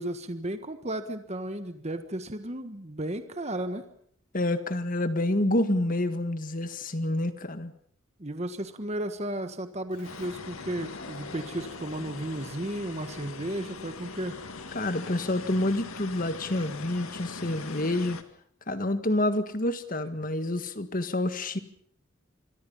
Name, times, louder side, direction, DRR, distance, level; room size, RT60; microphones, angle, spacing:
voice 1, 0.0-3.8 8.2-14.3 17.4-17.5, right 1 dB, 30° right, 9 dB, 1.4 m, -34 dB
voice 2, 4.3-7.7 14.7-18.2 18.7-21.6, left 1 dB, 40° left, 10 dB, 1.7 m, -28 dB
Keyboard (musical), 9.9-13.3, left 1 dB, 60° left, 5.4 m, -50 dB
sound 1, 10.0-18.2, left 4 dB, 85° left, 1.9 m, -41 dB
26.5 x 23.5 x 5.6 m, 0.64 s
head